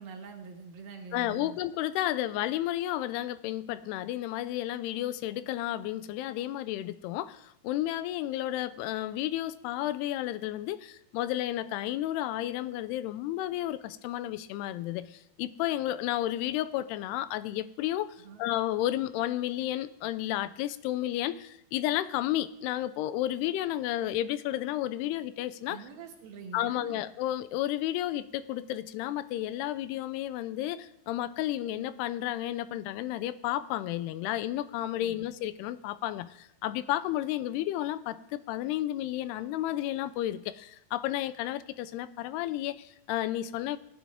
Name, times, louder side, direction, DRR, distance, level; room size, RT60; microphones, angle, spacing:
voice 1, 0.0-1.6 18.2-18.5 25.7-27.0 34.9-35.3, right 5 dB, 70° right, 3 dB, 3.0 m, -45 dB
voice 2, 1.1-25.8 26.5-43.8, left 13 dB, 90° left, 14 dB, 2.6 m, -32 dB
17.5 x 10.5 x 3.5 m, 0.80 s
omnidirectional pair, 4.6 m